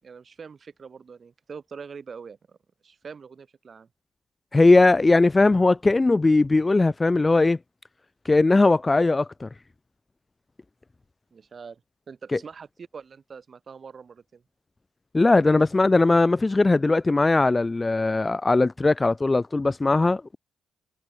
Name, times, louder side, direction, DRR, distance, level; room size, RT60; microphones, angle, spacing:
voice 1, 0.0-2.6 2.8-3.9 11.3-11.8 12.1-14.4, right 5 dB, 40° right, 5.9 m, -43 dB
voice 2, 4.5-7.6 8.3-9.5 15.1-20.4, left 3 dB, 20° left, 0.4 m, -19 dB
cardioid pair, 90°, 0 cm